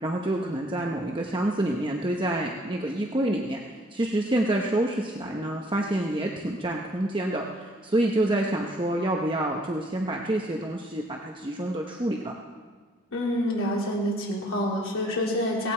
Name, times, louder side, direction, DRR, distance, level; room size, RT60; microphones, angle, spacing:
voice 1, 0.0-3.6 3.9-12.3, right 1 dB, 25° right, 0 dB, 0.9 m, -27 dB
voice 2, 13.1-15.7, left 1 dB, 75° left, -4 dB, 3.2 m, -27 dB
17.5 x 16.0 x 4.5 m, 1.5 s
head